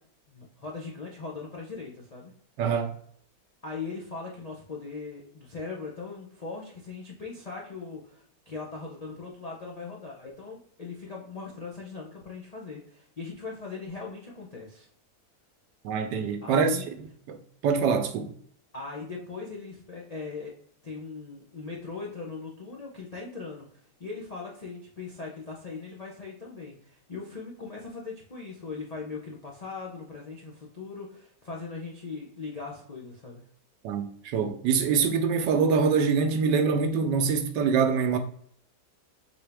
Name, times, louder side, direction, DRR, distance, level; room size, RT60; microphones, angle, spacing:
voice 1, 0.3-2.3 3.6-14.9 16.4-16.8 18.7-20.5 20.8-33.4, left 4 dB, 60° left, 0.4 m, -39 dB
voice 2, 2.6-2.9 15.8-16.8 17.3-18.3 33.8-38.2, right 5 dB, 85° right, 1.3 m, -25 dB
4.4 x 3.5 x 3.4 m
omnidirectional pair, 1.8 m